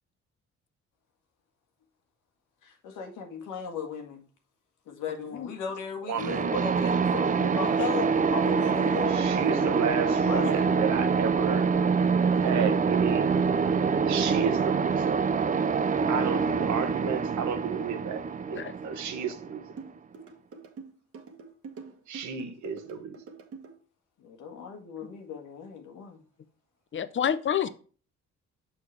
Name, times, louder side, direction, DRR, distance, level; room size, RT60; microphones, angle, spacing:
voice 1, 2.6-4.2 4.9-10.7 24.2-26.2, left 5 dB, 90° left, 1.6 m, -36 dB
voice 2, 6.0-6.4 9.1-11.7 12.4-13.3 14.1-15.2 16.1-18.2 18.5-19.6 22.1-23.1, right 7 dB, 75° right, 1.2 m, -32 dB
sound 1, 6.2-19.9, right 5 dB, 25° right, 0.5 m, -25 dB
sound 2, 19.8-23.7, right 5 dB, 50° right, 1.3 m, -45 dB
voice 3, 26.9-27.7, left 9 dB, 40° left, 0.6 m, -27 dB
6.4 x 5.9 x 3.2 m
cardioid pair, 90°, 30 cm